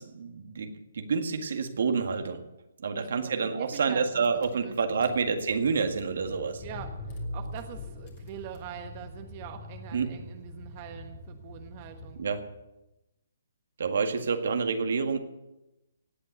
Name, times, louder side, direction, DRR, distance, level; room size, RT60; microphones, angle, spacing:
voice 1, 0.0-2.4 2.8-6.6 9.9-10.1 12.2-12.4 13.8-15.2, right 5 dB, 65° right, 7 dB, 1.8 m, -28 dB
voice 2, 3.0-3.3 3.6-4.8 6.6-12.2, right 9 dB, 35° right, 6 dB, 1.2 m, -44 dB
Car / Engine, 4.2-12.6, left 2 dB, 40° left, 3.1 m, -43 dB
17.5 x 8.4 x 8.0 m, 0.97 s
hypercardioid pair, 145°, 0 cm